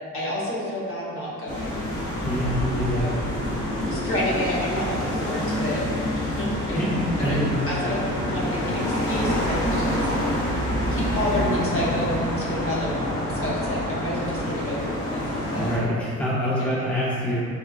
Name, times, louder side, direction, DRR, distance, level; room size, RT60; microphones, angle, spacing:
voice 1, 0.1-1.8 2.9-3.2 3.8-5.8 6.1-6.8 7.2-7.4 7.7-10.6 10.9-15.7 16.6-16.8, left 1 dB, 45° left, -5 dB, 0.8 m, -30 dB
sound 1, 1.5-15.8, equal, 90° left, 0.8 m, -27 dB
voice 2, 2.2-3.1 6.7-7.5 15.6-17.4, equal, 5° left, -8 dB, 0.5 m, -25 dB
3.6 x 2.2 x 2.4 m, 2.3 s
cardioid pair, 90°, 30 cm